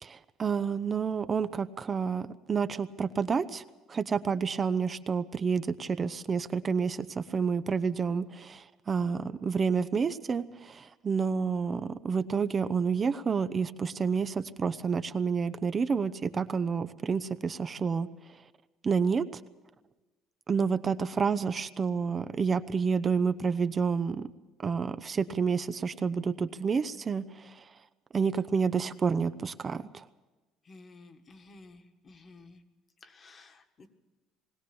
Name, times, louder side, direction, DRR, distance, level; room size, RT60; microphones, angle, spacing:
voice 1, 0.0-3.6 3.9-18.1 18.8-19.4 20.5-24.3 24.6-27.6 28.1-30.0, right 5 dB, 30° right, 12 dB, 0.7 m, -29 dB
voice 2, 30.6-32.6 33.0-33.9, left 3 dB, 30° left, 7 dB, 1.7 m, -53 dB
20.5 x 17.5 x 7.1 m, 1.2 s
cardioid pair, 130°, 0 cm